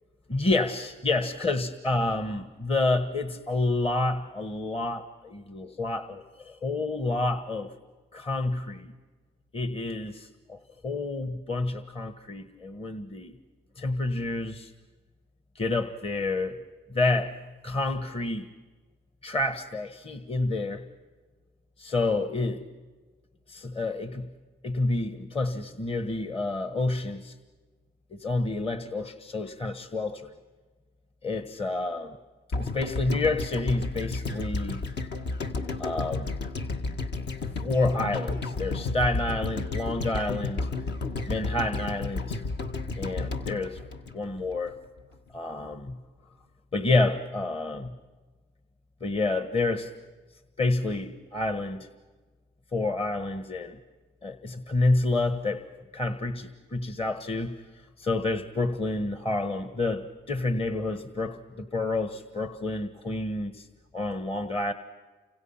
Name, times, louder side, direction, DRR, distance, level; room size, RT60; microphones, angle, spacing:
voice 1, 0.3-7.7 8.1-8.9 9.5-13.3 13.8-14.7 15.5-16.6 16.9-17.3 17.6-18.5 19.2-20.9 21.8-22.6 23.5-24.3 24.6-27.3 28.1-30.3 31.2-32.2 32.6-34.8 35.8-36.4 37.6-40.7 41.3-42.4 42.9-43.8 44.1-44.8 45.3-46.0 46.7-47.9 49.0-49.9 50.6-51.9 52.7-53.8 54.2-55.7 55.9-57.6 58.0-63.7 63.9-64.7, left 2 dB, 30° left, 9 dB, 1.5 m, -29 dB
sound 1, 32.5-44.7 45.0-45.1, left 3 dB, 60° left, 1.9 m, -32 dB
30.0 x 26.0 x 5.8 m, 1.3 s
cardioid pair, 90°, 20 cm